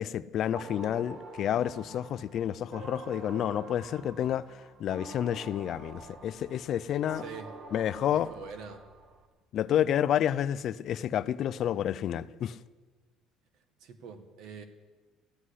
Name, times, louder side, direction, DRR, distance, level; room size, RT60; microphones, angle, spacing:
voice 1, 0.0-7.2 7.7-8.3 9.5-12.6, left 10 dB, 45° left, 0.4 m, -30 dB
sound 1, 0.5-9.3, right 3 dB, 40° right, 1.9 m, -47 dB
voice 2, 7.1-7.5 8.1-8.9 13.8-14.6, right 6 dB, 60° right, 1.7 m, -44 dB
14.0 x 9.5 x 9.9 m
cardioid pair, 155°, 0 cm